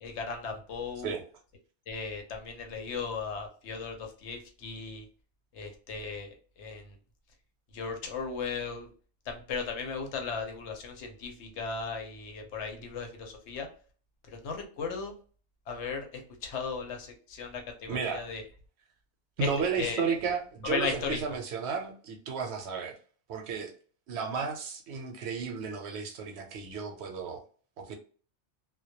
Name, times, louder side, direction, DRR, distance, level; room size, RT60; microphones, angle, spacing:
voice 1, 0.0-1.1 1.9-5.1 5.5-7.0 7.7-8.9 9.3-13.7 14.3-15.1 15.7-18.4 19.4-19.5 19.8-20.0 20.6-21.2, left 5 dB, 75° left, 4 dB, 0.9 m, -36 dB
voice 2, 17.9-18.4 19.4-22.9 23.3-23.7 24.1-27.4 27.8-27.9, right 5 dB, 70° right, 4 dB, 0.8 m, -33 dB
2.2 x 2.1 x 2.7 m, 0.41 s
omnidirectional pair, 1.2 m